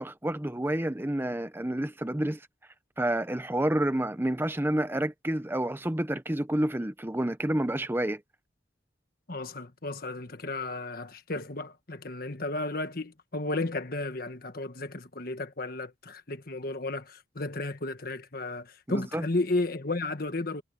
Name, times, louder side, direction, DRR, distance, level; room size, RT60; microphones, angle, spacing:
voice 1, 0.0-2.4 3.0-8.2 18.9-19.2, right 1 dB, 10° right, 0.7 m, -29 dB
voice 2, 9.3-20.6, left 2 dB, 55° left, 1.6 m, -33 dB
head